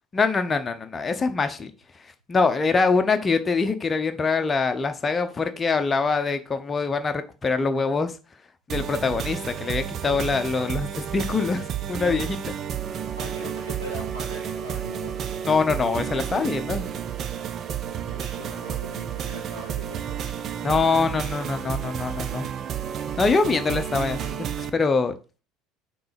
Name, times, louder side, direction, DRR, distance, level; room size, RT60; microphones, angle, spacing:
voice 1, 0.1-1.7 2.3-8.2 8.7-12.5 15.5-16.9 20.6-22.5 23.2-25.1, left 4 dB, 25° left, 0.9 m, -24 dB
sound 1, 8.7-24.7, right 9 dB, 40° right, 0.6 m, -31 dB
voice 2, 13.2-15.3 18.0-20.2, right 1 dB, 90° right, 2.5 m, -40 dB
5.9 x 3.9 x 5.1 m
figure-of-eight pair, 65°, 0 cm